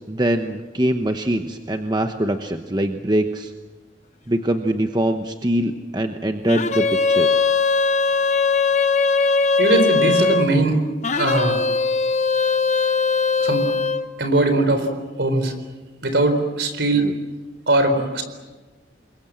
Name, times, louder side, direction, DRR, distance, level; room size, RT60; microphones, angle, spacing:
voice 1, 0.1-3.5 4.3-7.3 16.9-17.1, right 1 dB, 20° right, 6 dB, 1.0 m, -23 dB
sound 1, 6.5-10.5 11.0-14.1, left 4 dB, 35° left, 1.1 m, -20 dB
voice 2, 9.6-10.8 11.1-11.6 13.4-13.7 14.2-14.9 15.2-15.5 16.0-17.1 17.7-18.2, right 2 dB, 65° right, 8 dB, 4.2 m, -20 dB
28.0 x 22.5 x 7.7 m, 1.2 s
head